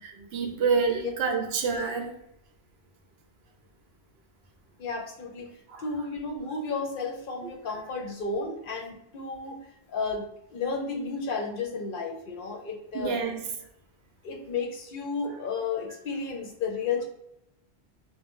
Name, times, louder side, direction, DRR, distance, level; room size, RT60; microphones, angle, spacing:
voice 1, 0.0-2.1 5.7-5.8 12.9-13.4, right 5 dB, 75° right, 0.8 m, -28 dB
voice 2, 4.8-5.5 5.8-9.6 9.9-13.2 14.2-17.0, left 4 dB, 60° left, 0.7 m, -32 dB
2.4 x 2.1 x 3.5 m
omnidirectional pair, 1.1 m